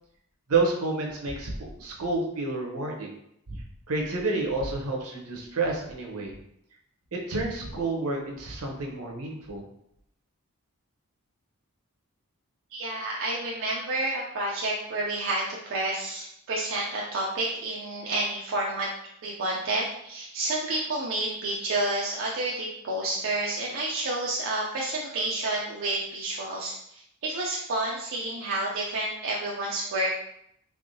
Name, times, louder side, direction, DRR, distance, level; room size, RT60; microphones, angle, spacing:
voice 1, 0.5-3.1 3.5-3.6 3.9-6.3 7.1-9.6, right 3 dB, 80° right, 0 dB, 0.9 m, -29 dB
voice 2, 12.7-18.9 19.2-30.1, right 2 dB, 60° right, -3 dB, 0.5 m, -30 dB
3.4 x 3.4 x 2.7 m, 0.74 s
head